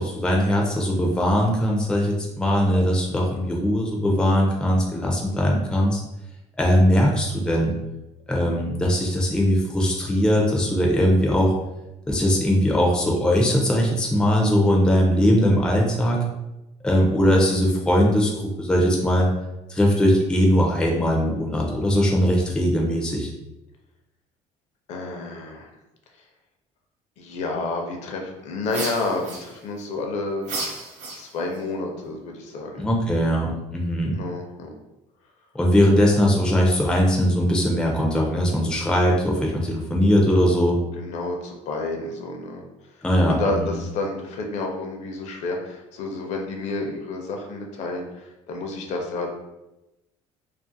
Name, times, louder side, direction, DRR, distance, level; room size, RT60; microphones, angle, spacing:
voice 1, 0.0-6.0 6.6-7.7 8.3-11.5 12.1-16.2 16.8-18.3 18.6-19.3 19.7-23.3 32.8-34.2 35.5-40.8 43.0-43.8, equal, 5° left, -1 dB, 0.3 m, -20 dB
voice 2, 24.9-25.7 27.2-30.5 31.2-32.9 34.0-34.7 41.0-42.6 43.3-49.3, left 2 dB, 60° left, 2 dB, 0.5 m, -30 dB
sound 1, 28.7-29.8 30.4-31.6, right 2 dB, 70° right, 0.6 m, -33 dB
2.4 x 2.4 x 2.6 m, 0.94 s
cardioid pair, 150°, 13 cm